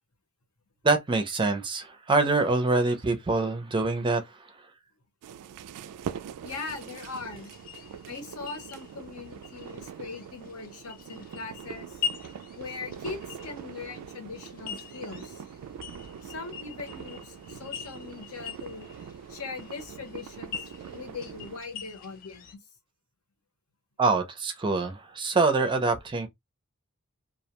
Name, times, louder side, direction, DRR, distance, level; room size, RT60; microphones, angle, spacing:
voice 1, 0.8-4.6 24.0-26.3, right 3 dB, 20° right, 0.4 m, -25 dB
sound 1, 5.2-21.6, right 8 dB, 85° right, 0.3 m, -43 dB
voice 2, 6.4-7.5 8.1-12.0 12.5-15.4 16.2-18.9 19.3-20.6 20.9-22.6, left 4 dB, 70° left, 0.9 m, -40 dB
sound 2, 6.7-22.6, left 8 dB, 40° left, 0.4 m, -43 dB
2.3 x 2.1 x 2.8 m
head